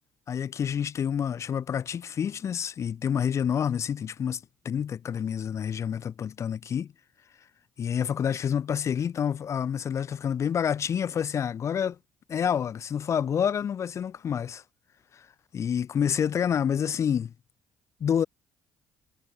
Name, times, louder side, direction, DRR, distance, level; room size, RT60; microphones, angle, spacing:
voice 1, 0.3-6.9 7.8-12.0 12.3-14.6 15.1-15.2 15.5-17.3 18.0-18.3, left 8 dB, 45° left, 0.4 m, -28 dB
hypercardioid pair, 55°, 7 cm